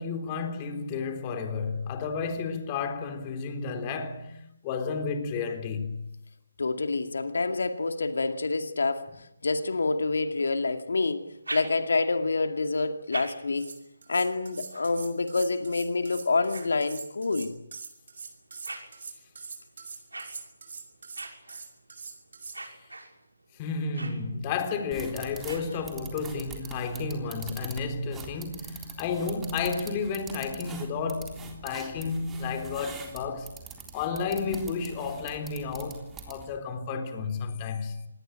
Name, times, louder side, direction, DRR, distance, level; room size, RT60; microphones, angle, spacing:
voice 1, 0.0-6.1 23.6-33.5 33.9-38.1, left 5 dB, 25° left, 3.6 m, -32 dB
voice 2, 6.6-11.3 11.5-13.7 14.1-17.5, left 3 dB, 70° left, 2.3 m, -27 dB
sound 1, 11.2-12.2 12.8-17.4 18.0-26.3, right 2 dB, 90° right, 6.4 m, -45 dB
sound 2, 13.6-22.6, right 5 dB, 60° right, 6.4 m, -43 dB
sound 3, 24.9-36.6, right 5 dB, 10° right, 3.6 m, -44 dB
27.0 x 20.5 x 8.9 m
figure-of-eight pair, 150°, 0 cm